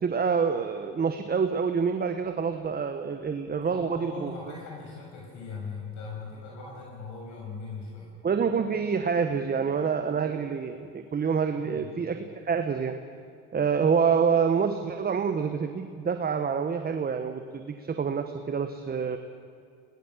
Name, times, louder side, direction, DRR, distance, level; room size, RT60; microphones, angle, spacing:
voice 1, 0.0-4.3 8.2-12.2 12.4-12.9 13.5-19.2, right 6 dB, 25° right, 7 dB, 1.2 m, -27 dB
voice 2, 3.6-8.1 11.5-11.9, left 4 dB, 55° left, -3 dB, 6.6 m, -40 dB
20.5 x 19.0 x 7.4 m, 2.3 s
hypercardioid pair, 80°, 35 cm